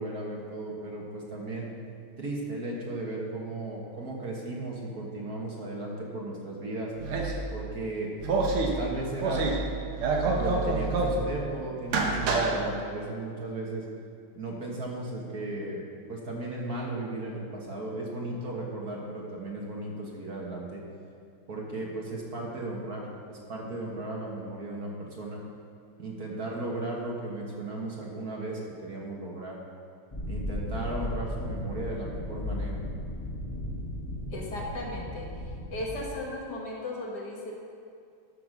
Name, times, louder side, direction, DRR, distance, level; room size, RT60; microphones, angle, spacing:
voice 1, 0.0-1.7 2.2-6.9 7.5-8.1 8.6-9.5 10.3-13.8 14.3-20.8 21.5-25.4 26.0-29.6 30.3-32.8, right 2 dB, 45° right, -2 dB, 1.8 m, -36 dB
sound 1, 7.0-7.4 8.2-8.7 9.1-9.6 9.9-11.2 11.8-12.5, right 3 dB, 85° right, 2.0 m, -27 dB
sound 2, 30.1-36.1, left 1 dB, 15° left, 1.4 m, -35 dB
voice 2, 34.3-35.3 35.7-37.5, left 1 dB, 50° left, -1 dB, 2.1 m, -36 dB
13.0 x 6.0 x 6.1 m, 2.3 s
omnidirectional pair, 2.3 m